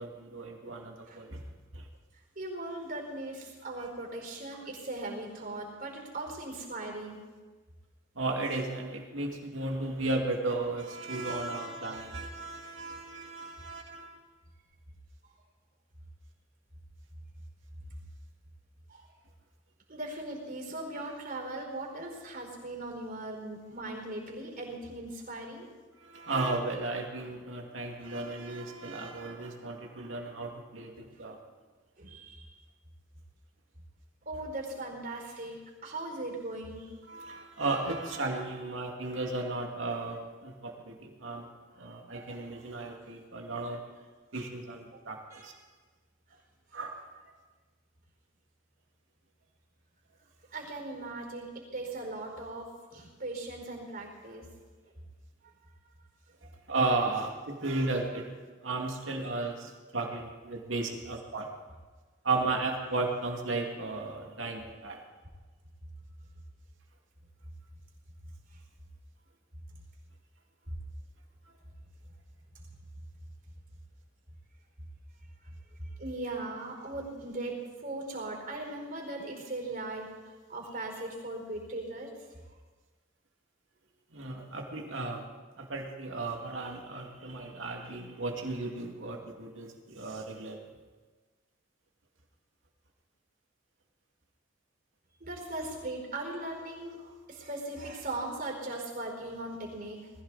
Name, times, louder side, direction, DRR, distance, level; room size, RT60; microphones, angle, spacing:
voice 1, 0.0-1.4 1.7-1.8 3.8-3.9 8.2-14.2 26.0-31.4 37.1-41.5 41.8-43.8 44.3-45.2 45.4-45.5 46.7-47.0 56.7-58.2 58.6-61.5 62.2-65.0 84.1-85.2 85.6-90.7, right 2 dB, 70° right, 1 dB, 2.4 m, -34 dB
voice 2, 0.7-1.2 2.3-7.2 11.4-12.1 18.9-19.1 19.9-25.7 32.0-32.5 34.2-36.9 38.0-38.1 43.8-43.9 44.7-45.0 45.3-45.6 47.1-47.2 50.5-54.6 55.4-55.5 57.1-57.3 58.0-58.3 59.0-59.1 59.6-59.8 60.3-60.4 61.0-61.1 62.6-63.0 68.5-68.6 70.7-70.8 75.4-82.1 95.2-100.1, right 2 dB, 50° right, 0 dB, 4.7 m, -39 dB
21.0 x 15.0 x 4.2 m, 1.3 s
head